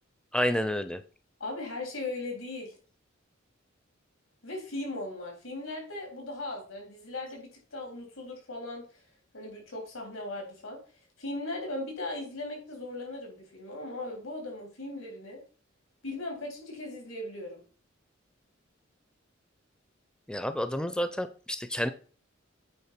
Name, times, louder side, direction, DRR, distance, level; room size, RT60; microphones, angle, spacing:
voice 1, 0.3-1.0 20.3-21.9, equal, 5° left, 10 dB, 0.4 m, -29 dB
voice 2, 1.4-2.7 4.4-8.9 9.3-10.8 11.2-15.4 16.0-17.6, left 2 dB, 90° left, 1 dB, 3.7 m, -38 dB
8.6 x 3.8 x 5.8 m, 0.39 s
head